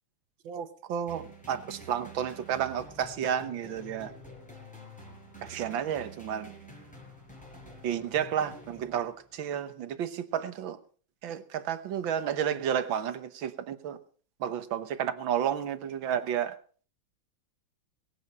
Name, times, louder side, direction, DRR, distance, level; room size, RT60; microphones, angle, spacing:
voice 1, 0.5-4.1 5.4-6.5 7.8-10.8 11.2-14.0 14.4-16.6, right 9 dB, 90° right, 1.9 m, -31 dB
sound 1, 1.1-9.4, right 1 dB, 5° left, 5.3 m, -48 dB
21.5 x 8.6 x 5.4 m
omnidirectional pair, 2.1 m